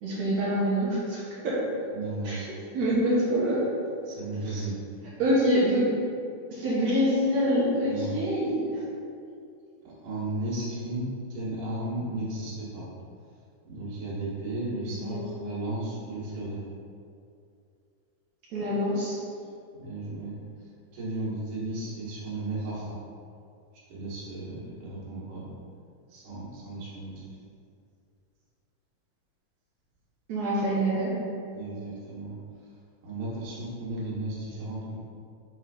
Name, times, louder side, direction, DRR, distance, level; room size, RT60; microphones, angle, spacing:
voice 1, 0.0-1.6 2.3-2.4 2.7-3.6 5.2-5.8 6.5-8.7 14.9-15.2 18.5-19.2 30.3-31.1, equal, 65° right, -7 dB, 2.5 m, -25 dB
voice 2, 1.9-2.5 4.0-4.8 7.8-8.1 9.8-12.9 13.7-16.6 19.8-20.4 20.9-23.0 23.9-25.5 26.1-27.3 31.5-32.3 33.0-35.0, right 2 dB, 90° right, -8 dB, 3.0 m, -34 dB
7.4 x 3.3 x 4.9 m, 2.5 s
omnidirectional pair, 3.5 m